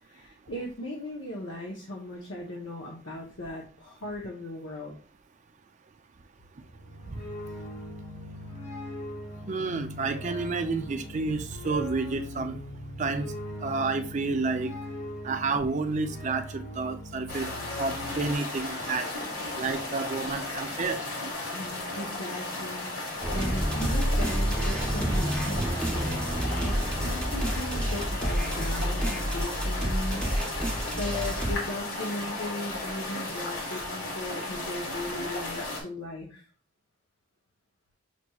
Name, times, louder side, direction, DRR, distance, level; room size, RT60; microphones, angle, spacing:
voice 1, 0.0-5.0 21.5-30.6 31.0-36.4, left 1 dB, 70° left, 0.8 m, -37 dB
sound 1, 6.6-18.3, left 1 dB, 50° left, 1.1 m, -40 dB
voice 2, 9.5-12.6 13.0-13.3 13.6-14.7 15.2-17.5 17.8-19.1 19.6-21.0, right 3 dB, 35° right, 0.4 m, -30 dB
sound 2, 17.3-35.8, left 2 dB, 90° left, 1.6 m, -35 dB
sound 3, 23.2-31.5, equal, 5° left, 0.9 m, -29 dB
5.9 x 3.0 x 2.3 m
head